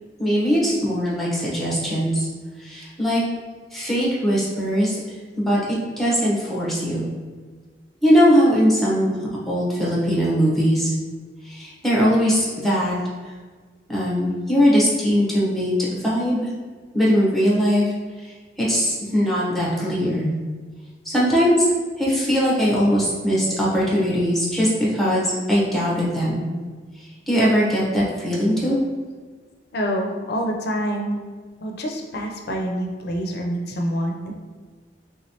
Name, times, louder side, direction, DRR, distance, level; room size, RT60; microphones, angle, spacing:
voice 1, 0.2-2.3 2.6-3.2 3.7-5.0 5.4-5.6 6.0-7.1 8.0-9.1 9.5-10.9 11.4-13.0 13.9-15.7 16.0-16.5 16.9-17.8 18.6-20.3 21.0-21.7 22.0-26.4 27.3-28.8, equal, ahead, -6 dB, 0.9 m, -20 dB
voice 2, 29.7-31.2 31.6-34.3, equal, 60° left, 2 dB, 0.5 m, -26 dB
3.4 x 3.1 x 2.8 m, 1.4 s
head